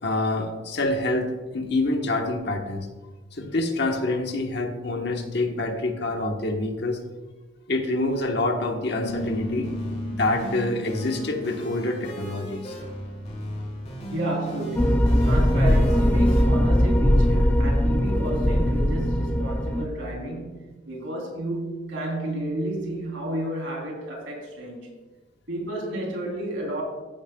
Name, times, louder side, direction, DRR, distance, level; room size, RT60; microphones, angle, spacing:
voice 1, 0.0-2.9 3.3-7.0 7.7-9.7 10.1-12.8, left 2 dB, 55° left, 3 dB, 1.3 m, -26 dB
sound 1, 9.0-14.0, left 1 dB, 85° left, 0.7 m, -37 dB
sound 2, 9.1-16.5, equal, 35° left, 3.4 m, -37 dB
voice 2, 14.1-24.9 25.5-26.8, right 1 dB, 70° right, -1 dB, 3.4 m, -31 dB
sound 3, 14.8-19.9, equal, 10° left, 0.4 m, -20 dB
14.5 x 10.5 x 2.3 m, 1.2 s
head